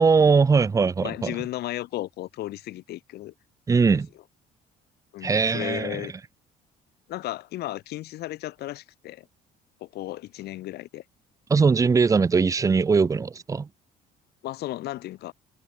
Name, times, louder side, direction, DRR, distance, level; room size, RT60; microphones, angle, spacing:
voice 1, 0.0-1.3 3.7-4.1 5.2-6.0 11.5-13.7, right 5 dB, 20° right, 0.5 m, -20 dB
voice 2, 1.0-3.3 3.9-4.0 5.1-6.1 7.1-9.3 9.8-11.0 14.4-15.3, left 15 dB, 75° left, 1.4 m, -34 dB
cardioid pair, 110°, 17 cm